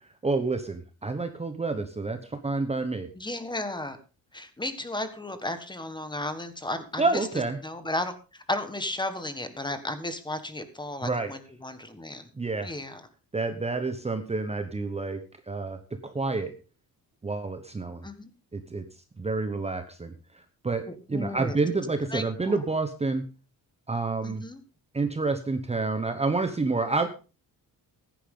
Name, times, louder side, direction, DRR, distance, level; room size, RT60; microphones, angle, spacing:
voice 1, 0.2-3.1 7.0-7.6 11.0-11.3 12.4-12.7 13.3-15.2 15.5-16.5 17.2-18.1 18.5-18.8 19.2-20.1 20.6-23.3 23.9-24.4 24.9-27.1, right 3 dB, 15° right, 7 dB, 1.0 m, -28 dB
voice 2, 3.1-4.0 4.3-7.3 7.6-12.3 12.6-13.1 18.0-18.3 20.9-21.6 22.1-22.6 24.2-24.6, left 1 dB, 10° left, 10 dB, 1.5 m, -34 dB
15.0 x 10.5 x 3.8 m, 0.33 s
cardioid pair, 140°, 37 cm